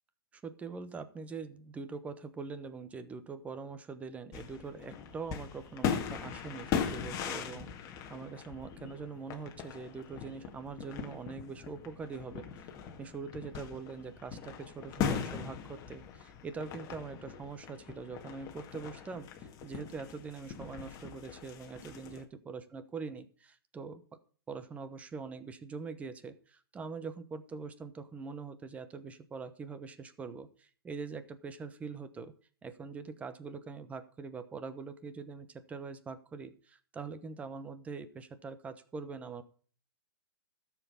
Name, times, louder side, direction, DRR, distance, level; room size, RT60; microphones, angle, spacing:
voice 1, 0.3-12.7 13.0-24.0 24.5-32.3 32.6-39.4, right 4 dB, 10° right, 12 dB, 1.0 m, -43 dB
sound 1, 4.3-22.2, left 7 dB, 25° left, 1.8 m, -40 dB
13.0 x 7.4 x 5.6 m, 0.43 s
hypercardioid pair, 140°, 12 cm